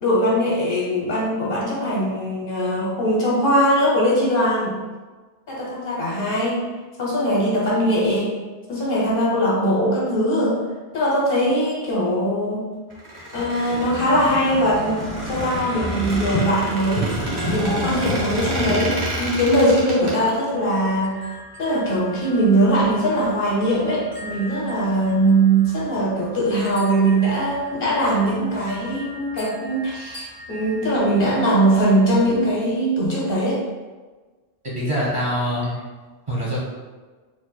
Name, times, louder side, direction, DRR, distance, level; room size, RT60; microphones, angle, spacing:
voice 1, 0.0-4.8 5.5-6.6 7.0-8.3 8.7-10.6 10.9-12.6 13.3-17.1 17.5-21.3 21.6-33.6, right 1 dB, 60° left, -5 dB, 1.0 m, -21 dB
Squeak, 12.9-20.1, equal, 90° right, 1.3 m, -30 dB
sound 1, 13.4-16.5 16.9-18.8, equal, 40° left, 1.1 m, -29 dB
sound 2, 15.7-32.6, equal, 65° right, 1.7 m, -43 dB
voice 2, 34.7-35.8 36.3-36.6, equal, 30° right, -7 dB, 1.1 m, -24 dB
4.3 x 3.1 x 2.2 m, 1.3 s
omnidirectional pair, 1.1 m